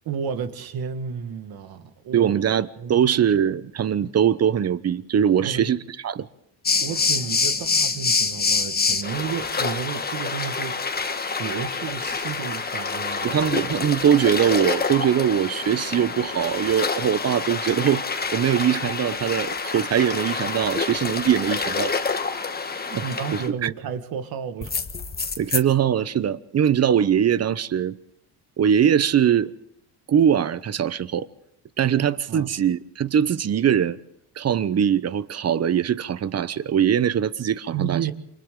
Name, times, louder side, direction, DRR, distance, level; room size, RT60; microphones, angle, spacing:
voice 1, 0.1-2.3 2.8-3.0 4.0-4.1 5.4-5.7 6.8-10.9 11.2-13.4 22.9-24.7 32.3-32.5 37.7-38.1, right 7 dB, 60° right, 1.8 m, -32 dB
voice 2, 2.1-5.8 6.0-6.3 13.2-18.0 18.3-21.9 22.9-23.0 23.3-23.7 25.4-28.0 28.6-29.5 30.1-31.3 31.8-34.0 34.4-38.0, right 9 dB, 35° right, 0.9 m, -21 dB
sound 1, 6.7-23.5 24.6-25.6, left 4 dB, 25° left, 1.4 m, -27 dB
28.5 x 25.0 x 3.8 m
cardioid pair, 100°, 41 cm